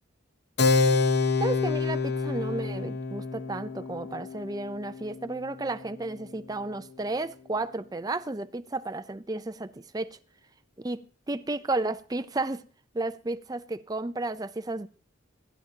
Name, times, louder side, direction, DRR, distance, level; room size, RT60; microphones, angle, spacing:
Keyboard (musical), 0.6-6.7, left 4 dB, 55° left, 1.0 m, -28 dB
voice 1, 1.4-10.2 10.8-11.0 11.3-12.6 12.9-14.9, right 2 dB, 20° right, 0.5 m, -32 dB
26.0 x 10.5 x 2.9 m
head